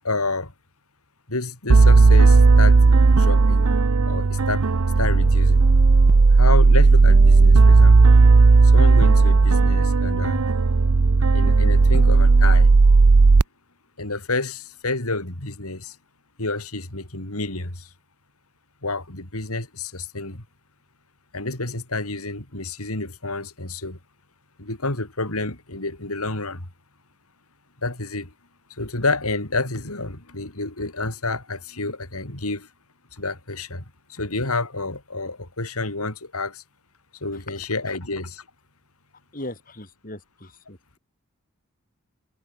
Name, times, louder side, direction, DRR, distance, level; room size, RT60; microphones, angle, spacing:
voice 1, 0.0-0.5 1.3-3.7 4.1-4.6 5.0-5.6 6.3-8.1 8.6-10.4 11.3-12.7 14.0-16.0 16.4-17.9 18.8-20.4 21.3-24.0 24.6-26.7 27.8-28.3 28.7-32.7 33.1-33.8 34.1-36.6 37.2-38.4, left 3 dB, 85° left, 4.5 m, -29 dB
sound 1, 1.7-13.4, right 3 dB, 85° right, 0.7 m, -14 dB
voice 2, 37.3-37.6 39.3-40.8, left 1 dB, 40° left, 6.4 m, -38 dB
head